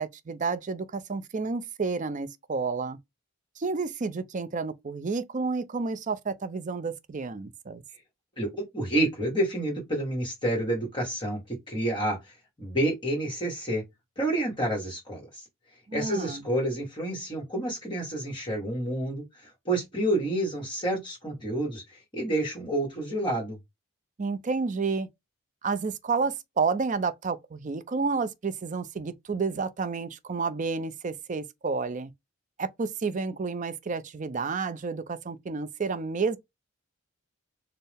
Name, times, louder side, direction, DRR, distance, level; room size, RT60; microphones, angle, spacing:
voice 1, 0.0-3.0 3.6-7.8 15.9-16.4 24.2-25.1 25.6-32.1 32.6-36.4, right 4 dB, 35° right, 0.5 m, -30 dB
voice 2, 8.4-13.8 14.2-15.4 15.9-23.6, right 1 dB, 20° left, 1.4 m, -29 dB
4.4 x 2.0 x 3.3 m
head